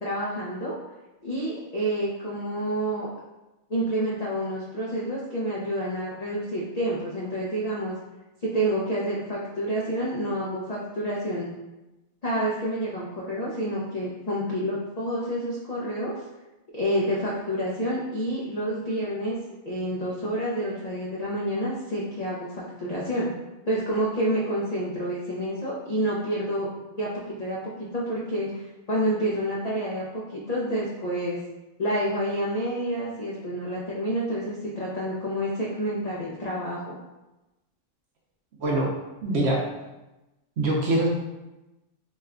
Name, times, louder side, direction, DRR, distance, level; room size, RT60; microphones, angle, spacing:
voice 1, 0.0-0.8 1.2-3.1 3.7-7.9 8.4-11.5 12.2-16.2 16.7-19.4 19.6-23.3 23.7-26.7 27.0-31.4 31.8-37.0, right 1 dB, 65° left, -6 dB, 0.3 m, -28 dB
voice 2, 39.2-39.6 40.6-41.1, right 2 dB, 60° right, -3 dB, 0.8 m, -23 dB
3.1 x 2.2 x 3.6 m, 1.0 s
omnidirectional pair, 1.5 m